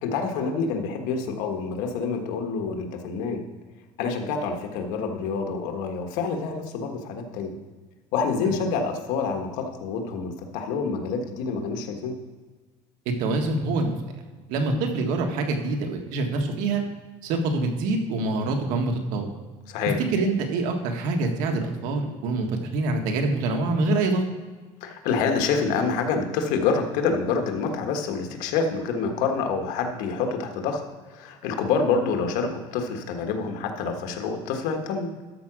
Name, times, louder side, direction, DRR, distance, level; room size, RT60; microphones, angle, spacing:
voice 1, 0.0-3.4 4.0-7.5 8.1-12.2 19.7-20.0 24.8-30.8 31.1-35.1, left 5 dB, 85° left, 4 dB, 1.5 m, -27 dB
voice 2, 13.2-14.0 14.5-16.8 17.2-19.3 20.1-24.2, right 2 dB, 85° right, 3 dB, 1.7 m, -25 dB
13.0 x 4.9 x 6.2 m, 1.3 s
cardioid pair, 140°, 13 cm